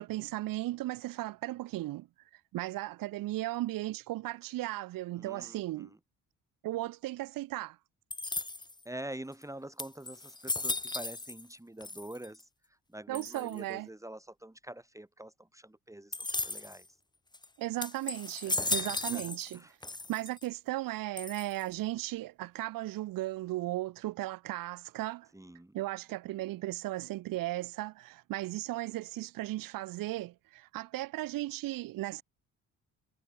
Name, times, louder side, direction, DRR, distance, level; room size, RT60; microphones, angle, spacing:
voice 1, 0.0-2.1 2.5-5.9 6.6-7.8 13.1-13.9 17.6-19.6 20.1-25.3 25.7-32.2, right 16 dB, 65° right, 0.8 m, -36 dB
voice 2, 5.2-6.0 8.8-16.9 18.5-19.7 25.3-25.8, right 1 dB, 10° right, 4.0 m, -46 dB
sound 1, 8.1-8.8 9.4-9.5 9.8-11.5 11.8-12.4 13.1-13.6 16.1-16.8 17.3-17.5 17.8-19.6 19.8-20.5 21.2-21.7, left 2 dB, 10° left, 1.2 m, -36 dB
supercardioid pair, 65°, 37 cm